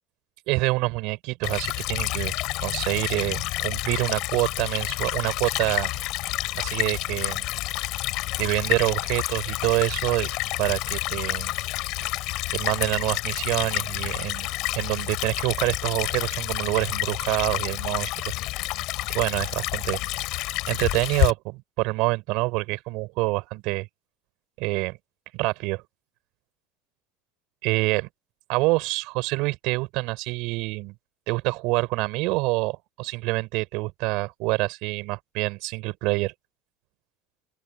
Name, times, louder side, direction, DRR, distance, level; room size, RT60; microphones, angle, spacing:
voice 1, 0.5-2.3 2.6-5.9 6.5-7.4 8.4-10.3 10.6-11.5 12.0-12.2 12.5-18.3 19.1-20.0 20.7-23.9 24.6-25.0 25.3-25.8 27.6-28.1 28.5-30.9 31.3-36.3, right 24 dB, 60° right, 6.7 m, -26 dB
Stream / Trickle dribble, 1.4-21.3, left 19 dB, 55° left, 7.7 m, -29 dB
open air
cardioid pair, 155°, 0 cm